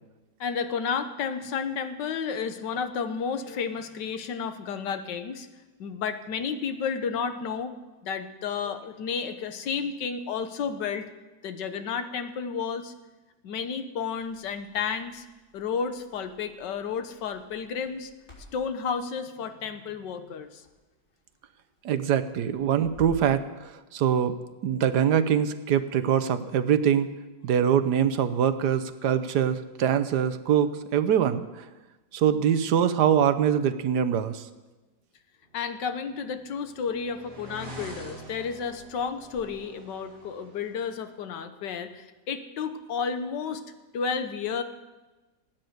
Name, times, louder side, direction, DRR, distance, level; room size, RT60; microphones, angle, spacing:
voice 1, 0.4-5.5 5.8-7.7 8.0-11.1 11.4-12.9 13.4-15.3 15.5-18.1 18.5-20.6 35.5-43.6 43.9-44.6, left 6 dB, 75° left, 9 dB, 1.7 m, -32 dB
Crackle, 14.1-23.4, left 1 dB, 45° left, 4.5 m, -52 dB
voice 2, 21.8-24.4 24.6-27.1 27.4-31.6 32.1-34.5, right 8 dB, 70° right, 12 dB, 1.4 m, -24 dB
sound 1, 35.9-40.9, right 1 dB, 30° right, 2.7 m, -45 dB
17.5 x 9.2 x 7.9 m, 1.2 s
omnidirectional pair, 1.9 m